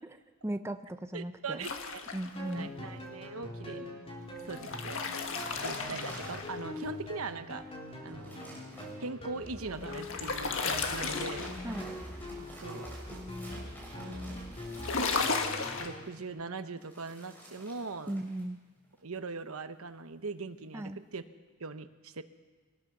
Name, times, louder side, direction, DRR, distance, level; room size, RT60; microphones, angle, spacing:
voice 1, 0.4-1.7 2.1-2.7 11.6-11.9 18.1-18.6 20.7-21.0, right 1 dB, 10° right, 8 dB, 0.7 m, -37 dB
voice 2, 1.1-2.0 2.5-4.0 4.4-5.0 5.6-7.6 8.0-8.6 9.0-11.5 12.5-13.0 14.1-14.5 15.8-18.1 19.0-21.2 21.6-22.2, right 4 dB, 75° right, 10 dB, 1.0 m, -41 dB
sound 1, 1.6-2.5 4.4-6.8 9.5-11.8 14.7-15.9, left 4 dB, 65° left, 1.7 m, -34 dB
sound 2, 2.4-16.1, left 1 dB, 25° left, 3.6 m, -43 dB
sound 3, 5.4-6.7 7.3-7.4 7.8-8.9 10.5-15.8 16.8-18.5 18.8-19.2, right 1 dB, 10° left, 5.4 m, -49 dB
23.0 x 19.0 x 6.2 m, 1.4 s
head